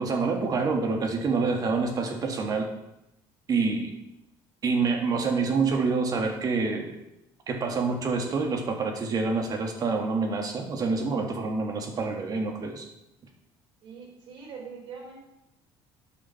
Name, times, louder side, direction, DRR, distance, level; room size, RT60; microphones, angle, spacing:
voice 1, 0.0-2.7 3.5-3.9 4.6-7.0 7.5-12.9, right 4 dB, 40° right, 3 dB, 1.7 m, -27 dB
voice 2, 13.8-15.2, right 5 dB, 65° right, 0 dB, 3.5 m, -43 dB
8.9 x 6.3 x 5.7 m, 0.87 s
cardioid pair, 110°, 9 cm